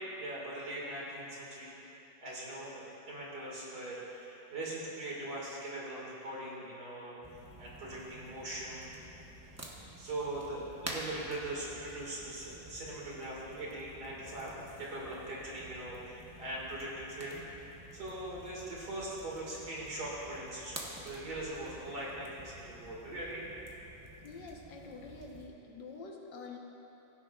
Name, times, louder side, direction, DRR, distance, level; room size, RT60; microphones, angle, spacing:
voice 1, 0.2-1.8 2.2-7.2 7.6-8.9 10.0-17.4 17.9-20.8 21.0-23.4, right 1 dB, 60° right, -5 dB, 2.6 m, -41 dB
sound 1, 7.2-25.5, right 1 dB, 25° right, 0.3 m, -50 dB
voice 2, 24.2-26.6, left 4 dB, 70° left, 0 dB, 1.7 m, -47 dB
16.5 x 9.9 x 2.4 m, 2.9 s
omnidirectional pair, 2.0 m